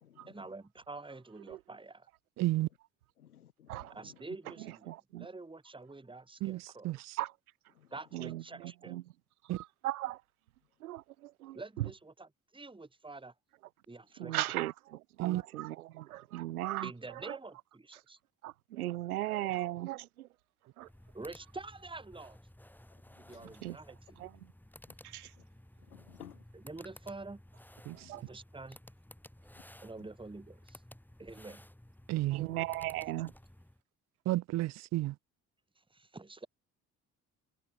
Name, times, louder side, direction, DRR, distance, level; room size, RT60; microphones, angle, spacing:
voice 1, 0.3-2.1 3.9-7.0 7.9-9.0 11.5-13.3 13.9-14.4 16.8-18.2 21.1-22.4 23.2-24.3 26.5-27.4 28.1-28.8 29.8-30.8 31.2-31.7 35.9-36.5, right 3 dB, 10° right, 2.2 m, -47 dB
voice 2, 2.4-2.7 6.4-7.1 9.5-9.6 15.2-15.4 27.9-28.0 32.1-32.5 34.3-35.1, right 17 dB, 40° right, 0.5 m, -32 dB
voice 3, 3.2-3.8 7.8-7.9 23.3-23.5 25.9-26.4 27.9-28.1, left 10 dB, 80° left, 2.2 m, -55 dB
voice 4, 4.6-5.3 7.2-7.3 8.1-9.0 9.4-10.2 10.8-11.9 14.2-17.4 18.4-20.3 20.8-20.9 23.6-23.8 24.2-24.5 25.0-25.3 28.1-28.2 32.2-33.3, right 15 dB, 75° right, 1.5 m, -38 dB
sound 1, 20.8-33.8, left 1 dB, 5° left, 4.8 m, -56 dB
figure-of-eight pair, 45°, 44 cm